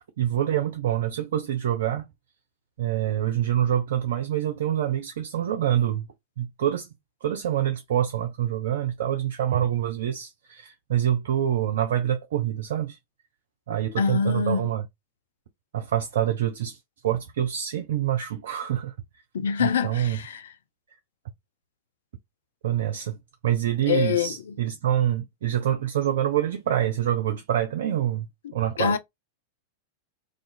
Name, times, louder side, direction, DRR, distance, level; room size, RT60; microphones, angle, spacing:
voice 1, 0.2-2.1 2.8-6.1 6.4-6.9 7.2-13.0 13.7-14.8 15.7-16.8 17.0-18.9 19.6-20.2 22.6-28.3 28.5-29.0, right 11 dB, 60° right, 0.3 m, -26 dB
voice 2, 14.0-14.7 19.3-20.5 23.9-24.5 28.8-29.0, left 7 dB, 65° left, 0.4 m, -25 dB
2.4 x 2.4 x 2.5 m
figure-of-eight pair, 90°, 0 cm